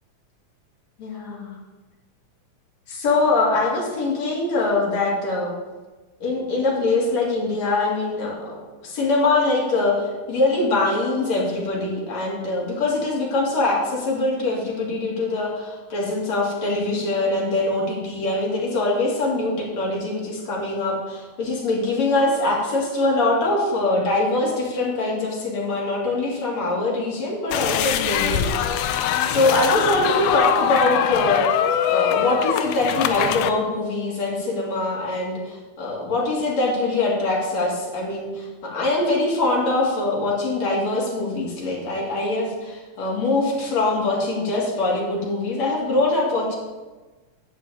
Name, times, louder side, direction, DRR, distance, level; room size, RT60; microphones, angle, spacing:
voice 1, 1.0-1.6 2.9-5.5 6.2-8.6 8.8-28.7 29.2-31.6 31.9-46.5, left 2 dB, 60° left, -3 dB, 3.5 m, -23 dB
sound 1, 27.5-33.5, left 10 dB, 80° left, 2.0 m, -23 dB
11.0 x 4.8 x 8.2 m, 1.3 s
omnidirectional pair, 3.6 m